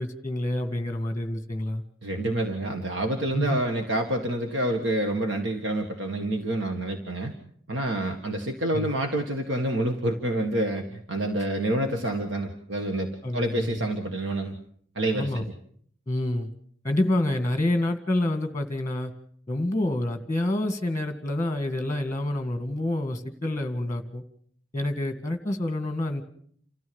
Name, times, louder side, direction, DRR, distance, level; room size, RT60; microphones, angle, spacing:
voice 1, 0.0-1.8 3.3-3.6 8.7-9.0 13.2-13.9 15.1-15.4 16.1-16.5 16.8-19.1 19.5-24.2 24.7-26.2, left 1 dB, 15° left, 8 dB, 1.9 m, -27 dB
voice 2, 2.0-7.3 7.7-14.5 15.0-15.4, right 1 dB, 65° right, 3 dB, 1.9 m, -28 dB
29.0 x 14.0 x 7.1 m, 0.63 s
head